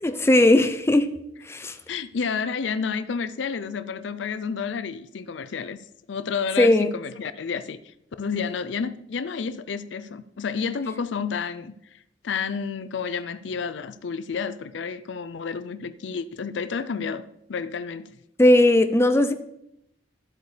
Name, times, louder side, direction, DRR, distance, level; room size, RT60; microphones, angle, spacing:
voice 1, 0.0-1.1 1.5-1.8 6.6-6.9 18.4-19.3, left 1 dB, 15° left, 9 dB, 0.5 m, -18 dB
voice 2, 1.9-5.8 6.1-7.8 8.2-17.2 17.5-18.2, left 6 dB, 75° left, 13 dB, 0.5 m, -30 dB
12.5 x 8.0 x 3.3 m, 0.78 s
head